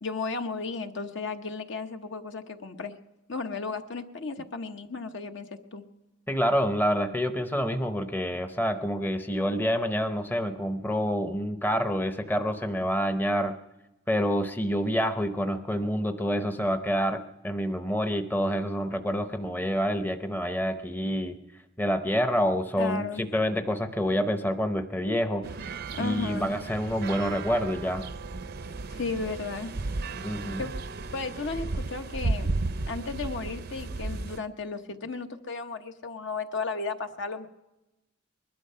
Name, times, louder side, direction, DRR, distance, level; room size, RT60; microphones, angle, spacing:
voice 1, 0.0-2.9 3.3-5.9 22.8-23.2 25.9-26.5 28.9-29.7 30.6-30.7 31.1-32.5 32.9-37.5, left 4 dB, 65° left, 6 dB, 1.0 m, -34 dB
voice 2, 6.3-13.5 14.1-21.4 21.8-25.4 26.0-28.0 30.2-30.6, equal, 10° left, 8 dB, 0.7 m, -27 dB
sound 1, 25.4-34.4, right 3 dB, 55° right, 0.6 m, -34 dB
20.5 x 12.0 x 5.6 m, 0.97 s
head